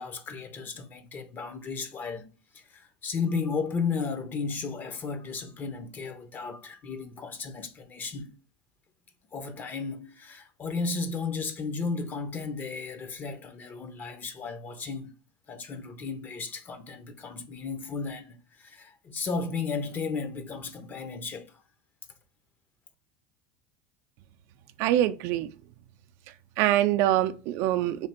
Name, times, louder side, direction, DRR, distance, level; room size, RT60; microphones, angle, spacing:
voice 1, 0.0-2.3 2.5-8.3 9.3-15.1 15.5-21.5, left 4 dB, 35° left, 0.8 m, -34 dB
voice 2, 24.8-25.5 26.6-28.1, right 13 dB, 65° right, 0.4 m, -24 dB
3.4 x 2.9 x 4.2 m
supercardioid pair, 105°, 5 cm